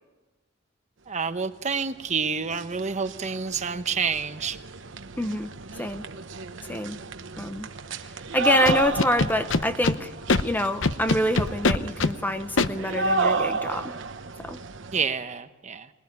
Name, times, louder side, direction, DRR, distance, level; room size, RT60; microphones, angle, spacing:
voice 1, 1.1-4.6 14.9-15.9, right 5 dB, 35° right, 9 dB, 1.0 m, -28 dB
sound 1, 2.0-2.1 2.3-15.0, right 3 dB, 70° right, 1.1 m, -32 dB
voice 2, 5.2-5.5 5.8-6.0 6.7-7.0 7.4-7.7 8.3-10.1 10.4-13.9 14.4-14.6, left 1 dB, 10° left, 9 dB, 0.9 m, -26 dB
Scratching (performance technique), 8.7-10.0 10.3-10.4 10.8-12.1 12.6-12.7, left 3 dB, 75° left, 0.9 m, -22 dB
25.0 x 20.0 x 9.8 m, 1.2 s
head